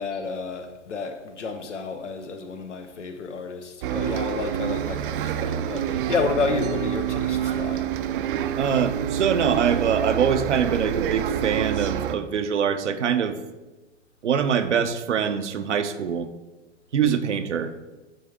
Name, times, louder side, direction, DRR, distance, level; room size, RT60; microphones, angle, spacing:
voice 1, 0.0-7.8, left 4 dB, 90° left, 0.8 m, -30 dB
Bus, 3.8-12.2, right 10 dB, 50° right, 0.5 m, -27 dB
voice 2, 8.5-13.4 14.2-16.3 16.9-17.7, right 7 dB, 85° right, 0.7 m, -24 dB
9.3 x 3.6 x 3.5 m
hypercardioid pair, 110°, 35 cm